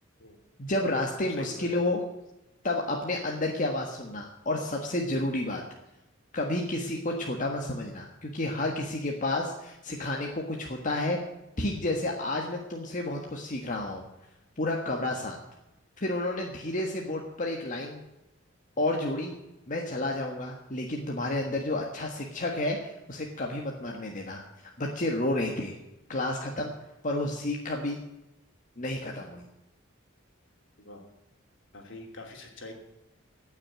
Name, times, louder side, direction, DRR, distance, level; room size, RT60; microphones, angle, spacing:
voice 1, 0.6-2.0 2.6-5.6 6.3-11.2 11.6-14.0 14.6-15.4 16.0-18.0 18.8-19.3 19.7-25.8 26.1-26.7 27.0-28.0 28.8-29.4, left 1 dB, 40° left, 0 dB, 1.5 m, -31 dB
voice 2, 1.3-1.9 15.1-15.2 30.8-31.0 31.7-32.7, left 2 dB, 65° left, 2 dB, 3.0 m, -45 dB
16.5 x 6.5 x 8.7 m, 0.93 s
head